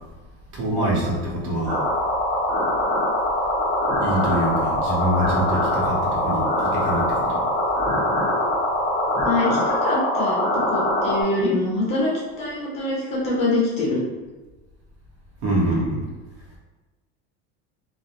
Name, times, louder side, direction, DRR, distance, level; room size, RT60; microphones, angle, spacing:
voice 1, 0.5-1.8 4.0-7.4 15.4-16.0, right 1 dB, 85° right, -4 dB, 1.0 m, -25 dB
sound 1, 1.7-11.2, left 1 dB, 5° left, 0.9 m, -23 dB
voice 2, 9.2-12.1 12.4-14.0 15.6-15.8, left 2 dB, 20° left, -5 dB, 0.4 m, -24 dB
2.3 x 2.2 x 2.8 m, 1.2 s
cardioid pair, 175°, 33 cm